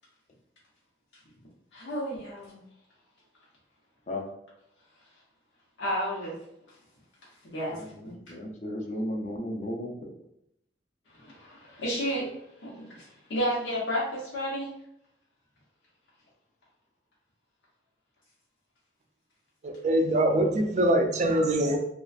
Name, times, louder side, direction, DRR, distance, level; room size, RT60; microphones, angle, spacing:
voice 1, 1.7-2.6 5.8-6.3 7.5-8.1 11.1-12.3 12.6-14.7, equal, 90° left, -6 dB, 0.8 m, -32 dB
voice 2, 7.7-10.2, left 1 dB, 40° left, 1 dB, 0.4 m, -35 dB
voice 3, 19.6-21.8, right 1 dB, 40° right, 4 dB, 0.3 m, -23 dB
2.4 x 2.3 x 2.3 m, 0.77 s
head